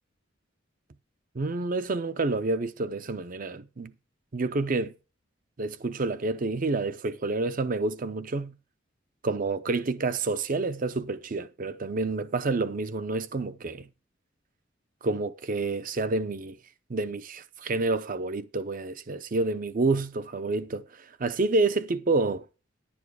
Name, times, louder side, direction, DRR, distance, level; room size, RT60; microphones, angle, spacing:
voice 1, 1.3-3.9 4.3-4.9 5.6-8.6 9.2-13.9 15.0-16.6 16.9-20.8 21.2-22.4, right 3 dB, 45° right, 0.6 m, -28 dB
11.0 x 7.3 x 4.7 m
head